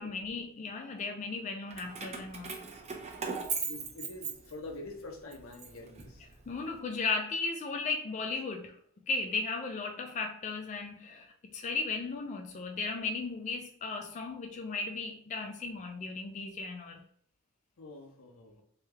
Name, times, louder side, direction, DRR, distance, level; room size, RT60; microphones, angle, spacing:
voice 1, 0.0-2.5 6.5-8.8 9.1-17.0, left 4 dB, 35° left, 0.3 m, -36 dB
Keys jangling, 1.7-4.9 5.3-6.6, right 5 dB, 30° right, 0.5 m, -38 dB
voice 2, 3.4-6.2 17.8-18.6, left 2 dB, 75° left, 0.7 m, -46 dB
3.1 x 2.3 x 3.2 m
head